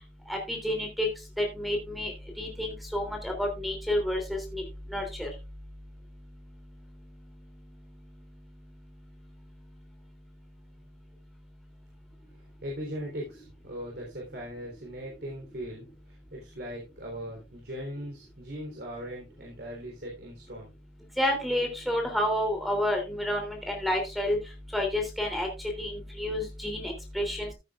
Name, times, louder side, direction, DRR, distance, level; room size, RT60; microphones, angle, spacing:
voice 1, 0.3-1.1 1.4-4.6 4.9-5.3 21.2-24.4 24.7-27.5, left 1 dB, ahead, 3 dB, 3.0 m, -30 dB
voice 2, 12.3-20.7, equal, 65° right, -1 dB, 3.7 m, -39 dB
15.0 x 8.9 x 2.4 m, 0.25 s
head